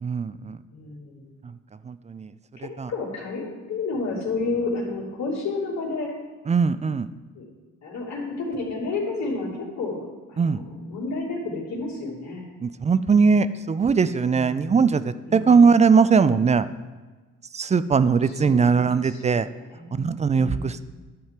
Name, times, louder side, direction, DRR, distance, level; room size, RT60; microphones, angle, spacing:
voice 1, 0.0-0.6 1.4-1.6 1.8-2.3 2.6-2.9 6.5-7.1 10.4-10.6 12.6-16.7 17.5-19.5 19.9-20.8, right 5 dB, 25° right, 14 dB, 0.4 m, -20 dB
voice 2, 0.7-1.3 2.6-6.1 7.3-7.5 7.8-12.4 14.3-14.7 15.3-15.5 18.2-18.7 19.0-19.2 19.6-20.0 20.3-20.8, left 3 dB, 65° left, -5 dB, 2.8 m, -31 dB
11.0 x 4.3 x 7.5 m, 1.3 s
cardioid pair, 90°, 30 cm